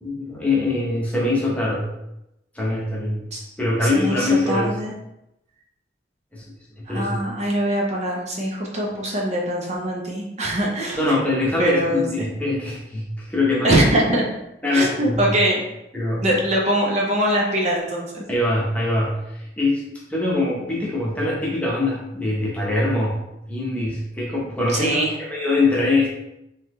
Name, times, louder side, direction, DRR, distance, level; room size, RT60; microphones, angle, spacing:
voice 1, 0.0-1.9 2.5-3.2 3.6-4.7 6.3-6.4 6.8-7.2 10.9-13.8 14.6-15.2 15.9-16.4 18.3-19.8 20.1-23.2 23.5-26.1, left 2 dB, 10° left, -5 dB, 0.9 m, -23 dB
voice 2, 3.8-4.9 6.9-11.0 11.6-12.3 13.6-14.2 14.7-15.6 16.2-18.2 24.7-25.1, right 1 dB, 40° right, -2 dB, 0.6 m, -22 dB
4.0 x 2.8 x 3.1 m, 0.87 s
head